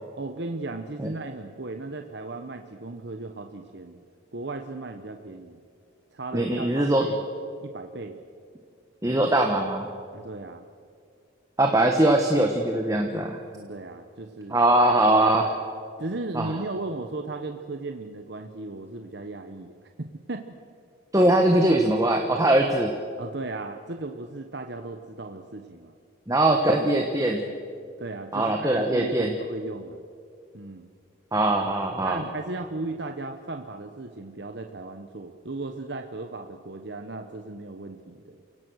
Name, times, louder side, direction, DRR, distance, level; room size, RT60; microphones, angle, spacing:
voice 1, 0.2-4.0 4.3-5.6 6.1-7.2 7.6-8.2 10.1-10.7 13.5-14.6 16.0-19.7 20.0-20.4 23.2-25.9 28.0-30.0 30.5-30.9 32.0-38.4, right 2 dB, 55° right, 5 dB, 1.0 m, -36 dB
voice 2, 6.3-7.1 9.0-9.9 11.6-13.4 14.5-15.5 16.3-16.6 21.1-22.9 26.3-27.4 28.3-29.3 31.3-32.2, right 1 dB, 15° right, 3 dB, 1.2 m, -21 dB
29.0 x 17.0 x 6.3 m, 2.2 s
head